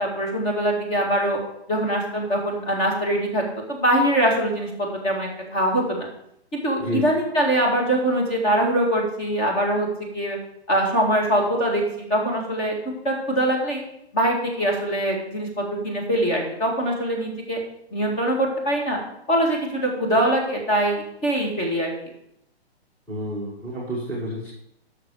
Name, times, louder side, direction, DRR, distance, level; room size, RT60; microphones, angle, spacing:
voice 1, 0.0-1.4 1.7-4.7 5.0-6.1 6.5-9.9 10.1-10.4 10.7-12.7 13.0-13.8 14.1-17.6 17.9-19.0 19.3-21.9, right 1 dB, 25° left, -1 dB, 2.2 m, -23 dB
voice 2, 23.1-24.5, equal, 5° left, -8 dB, 1.4 m, -29 dB
7.8 x 6.4 x 6.6 m, 0.78 s
hypercardioid pair, 155°, 32 cm